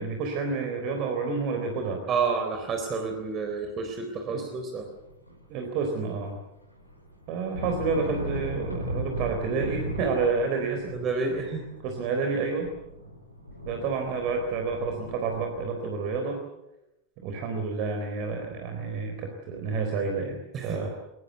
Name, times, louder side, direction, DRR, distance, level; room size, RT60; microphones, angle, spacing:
voice 1, 0.0-2.0 4.3-4.4 5.5-6.4 7.3-10.9 11.3-11.5 11.8-12.7 13.7-16.4 17.2-20.9, right 4 dB, 45° right, 4 dB, 3.9 m, -29 dB
voice 2, 2.1-4.9 10.9-11.6 20.5-20.9, right 5 dB, 30° right, 5 dB, 3.8 m, -29 dB
sound 1, 4.9-5.9 6.1-15.7, right 1 dB, 85° left, 4.8 m, -37 dB
23.0 x 21.5 x 8.1 m, 0.93 s
figure-of-eight pair, 90°, 0 cm